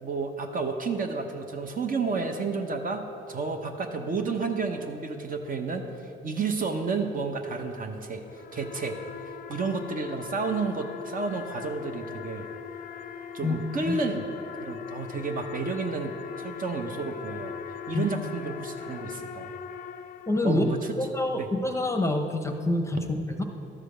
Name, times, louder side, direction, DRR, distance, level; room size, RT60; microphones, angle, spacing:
voice 1, 0.0-3.0 3.3-9.0 9.2-12.5 13.3-14.2 14.6-17.5 17.9-19.5 20.4-20.9 21.4-21.5, right 4 dB, 45° right, 5 dB, 0.8 m, -31 dB
sound 1, 8.1-20.8, left 7 dB, 45° left, 0.4 m, -40 dB
voice 2, 20.3-20.6 21.0-23.4, left 2 dB, 15° left, 5 dB, 0.7 m, -26 dB
12.5 x 5.0 x 4.9 m, 2.8 s
cardioid pair, 90°, 20 cm